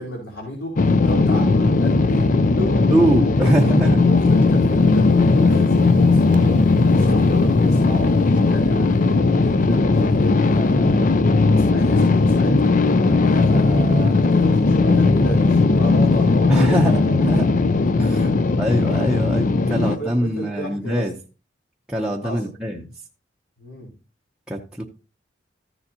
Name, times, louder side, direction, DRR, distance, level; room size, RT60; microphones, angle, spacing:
voice 1, 0.0-2.2 2.5-2.9 3.4-3.5 4.1-11.2 11.5-12.7 13.1-17.0 19.1-19.3 19.9-21.1 22.2-22.4 23.6-23.9, equal, 75° left, 3.5 m, -34 dB
sound 1, 0.8-20.0, left 3 dB, 45° left, 0.5 m, -17 dB
voice 2, 2.9-4.0 5.5-5.6 16.5-17.5 18.0-18.3 18.6-21.2 21.9-22.9 24.5-24.8, right 1 dB, 5° right, 0.7 m, -22 dB
sound 2, 3.7-9.3, left 4 dB, 45° right, 0.8 m, -30 dB
14.5 x 7.0 x 2.8 m
head